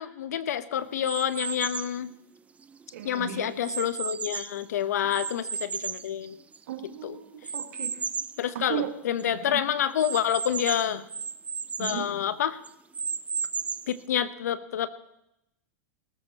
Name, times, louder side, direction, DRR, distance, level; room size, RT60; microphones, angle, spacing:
voice 1, 0.0-2.1 3.0-6.4 7.0-7.2 8.4-11.1 11.8-12.6 13.9-14.9, left 10 dB, 80° left, 14 dB, 1.0 m, -28 dB
sound 1, 1.0-2.0 2.6-4.6 5.1-6.8 7.4-8.4 8.9-9.0 9.2-9.3 10.0-12.1 12.6-14.0, right 5 dB, 15° right, 0.4 m, -34 dB
voice 2, 2.9-3.5 5.0-5.1 6.7-8.0 8.5-8.9 9.2-9.6 11.8-12.1, right 11 dB, 75° right, 6 dB, 1.8 m, -36 dB
19.0 x 13.5 x 3.0 m, 0.84 s
hypercardioid pair, 115°, 9 cm